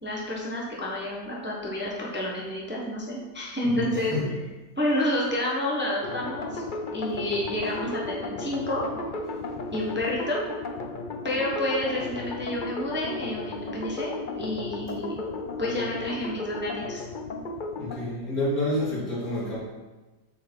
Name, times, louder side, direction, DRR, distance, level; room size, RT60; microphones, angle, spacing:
voice 1, 0.0-4.2 4.8-6.6 6.9-8.8 9.7-10.5 11.2-15.2 15.6-17.0, left 1 dB, 5° right, -4 dB, 1.1 m, -29 dB
voice 2, 3.6-4.4 17.8-19.6, left 1 dB, 55° left, -7 dB, 3.3 m, -29 dB
sound 1, 6.0-18.0, left 2 dB, 75° left, 0.4 m, -34 dB
7.2 x 6.9 x 4.6 m, 1.2 s
omnidirectional pair, 1.9 m